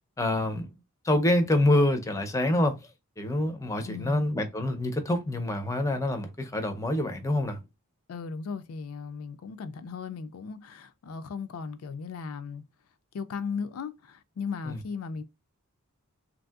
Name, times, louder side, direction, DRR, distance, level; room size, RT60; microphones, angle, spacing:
voice 1, 0.2-0.7 1.0-2.8 3.2-7.6 14.6-14.8, left 1 dB, 15° left, 0.5 m, -26 dB
voice 2, 3.9-4.2 8.1-12.6 13.1-15.2, left 5 dB, 70° left, 0.4 m, -36 dB
3.1 x 2.6 x 2.3 m
head